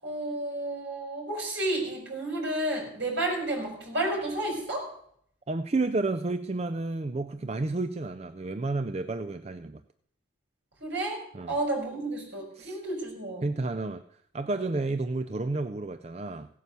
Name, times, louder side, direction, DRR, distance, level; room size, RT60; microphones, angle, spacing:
voice 1, 0.0-4.9 10.8-11.2 11.5-13.5, right 1 dB, 75° right, 1 dB, 6.0 m, -31 dB
voice 2, 5.5-9.8 11.3-11.5 12.6-12.8 13.4-14.0 14.3-16.5, right 2 dB, 35° right, 10 dB, 0.5 m, -31 dB
16.5 x 9.3 x 6.9 m, 0.66 s
head